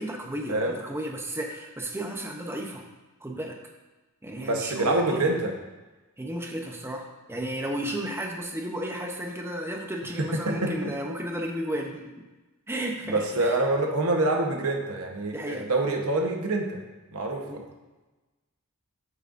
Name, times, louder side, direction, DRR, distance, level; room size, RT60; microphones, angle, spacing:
voice 1, 0.0-2.8 3.2-3.6 4.2-5.4 6.2-12.1 12.7-13.5 15.3-15.7 17.5-17.6, right 1 dB, 10° right, 1 dB, 0.8 m, -33 dB
voice 2, 4.4-5.5 10.2-10.9 13.1-16.8 17.1-17.6, right 2 dB, 75° right, 1 dB, 1.1 m, -26 dB
8.5 x 6.6 x 2.6 m, 1.1 s
head